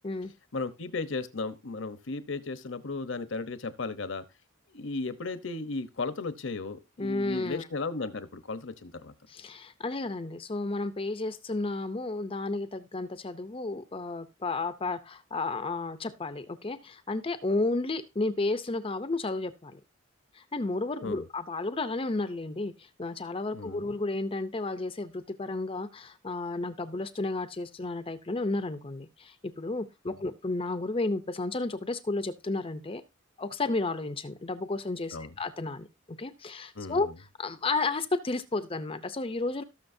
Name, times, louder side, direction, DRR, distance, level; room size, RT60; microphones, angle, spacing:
voice 1, 0.5-4.2 4.7-9.1 21.0-21.3 23.5-23.9 30.1-30.2 35.1-35.3 36.8-37.1, left 3 dB, 65° left, 12 dB, 0.9 m, -35 dB
voice 2, 7.0-7.7 9.3-19.8 20.3-33.0 33.4-39.6, left 2 dB, 25° left, 11 dB, 0.6 m, -32 dB
17.5 x 6.4 x 2.7 m, 0.25 s
head